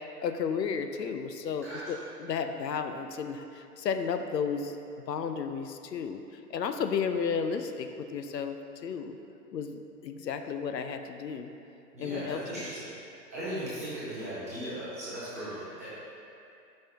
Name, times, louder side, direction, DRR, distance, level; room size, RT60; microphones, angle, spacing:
voice 1, 0.2-4.8 5.1-6.2 6.5-8.6 8.8-9.2 9.5-11.5 12.0-12.7, left 6 dB, 80° left, 7 dB, 0.7 m, -33 dB
voice 2, 11.9-12.8 13.3-15.9, right 1 dB, 10° right, -13 dB, 0.6 m, -37 dB
8.8 x 5.5 x 2.9 m, 2.6 s
hypercardioid pair, 160°, 49 cm